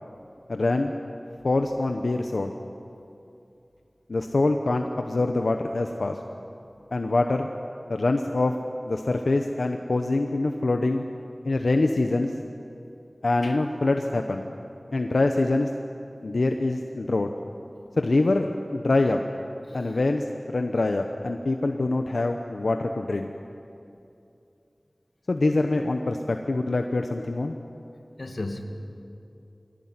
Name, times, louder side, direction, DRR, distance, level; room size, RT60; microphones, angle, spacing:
voice 1, 0.5-0.9 1.4-2.5 4.1-6.2 6.9-7.5 7.9-8.5 8.9-11.0 11.4-12.3 13.2-14.5 14.9-15.7 16.2-17.3 18.0-18.5 18.7-19.2 19.7-23.3 25.3-27.5, left 2 dB, 85° left, 4 dB, 1.0 m, -24 dB
voice 2, 19.6-20.0 28.2-28.6, left 2 dB, 60° left, 5 dB, 2.1 m, -36 dB
22.5 x 17.5 x 9.6 m, 2.7 s
wide cardioid pair, 55°, 0 cm